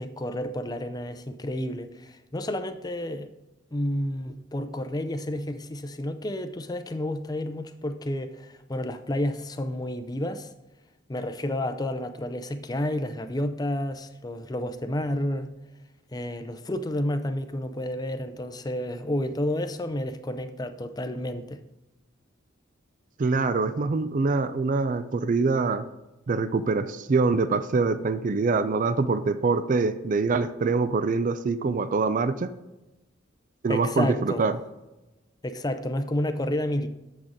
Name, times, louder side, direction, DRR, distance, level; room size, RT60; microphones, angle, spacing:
voice 1, 0.0-3.3 3.7-10.5 11.1-15.5 16.1-21.6 33.7-34.5 35.4-36.9, left 1 dB, 20° left, 0.5 m, -30 dB
voice 2, 23.2-25.9 26.3-32.5 33.6-34.6, right 4 dB, 45° right, 0.4 m, -24 dB
7.3 x 6.2 x 5.1 m
head